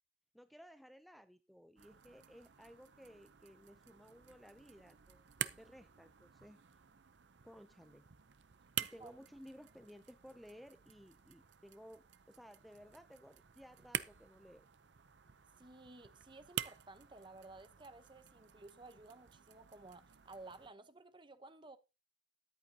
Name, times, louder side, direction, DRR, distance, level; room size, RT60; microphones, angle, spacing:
voice 1, 0.3-6.6 7.4-8.0 8.8-14.7, equal, ahead, 0.5 m, -57 dB
sound 1, 1.8-20.7, right 10 dB, 70° right, 0.7 m, -49 dB
voice 2, 15.6-21.8, right 2 dB, 25° right, 1.0 m, -55 dB
14.0 x 11.0 x 2.8 m
head